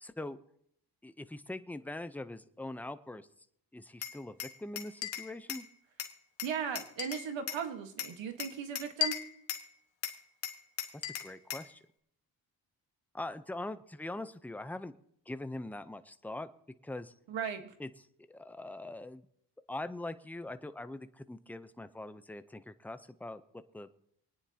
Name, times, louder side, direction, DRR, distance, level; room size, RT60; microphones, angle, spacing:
voice 1, 0.0-0.4 1.0-3.3 3.7-5.7 11.0-11.8 13.1-14.9 15.3-16.5 16.8-17.1 17.8-17.9 18.3-19.3 19.7-23.4 23.7-23.9, left 2 dB, 5° left, 11 dB, 0.6 m, -42 dB
Glass, 4.0-5.7 6.0-7.6 8.0-9.7 10.0-11.7, left 11 dB, 85° left, 1.5 m, -38 dB
voice 2, 6.4-9.2 17.3-17.7, right 7 dB, 85° right, 7 dB, 1.5 m, -37 dB
27.5 x 9.9 x 2.8 m, 0.72 s
cardioid pair, 85°, 44 cm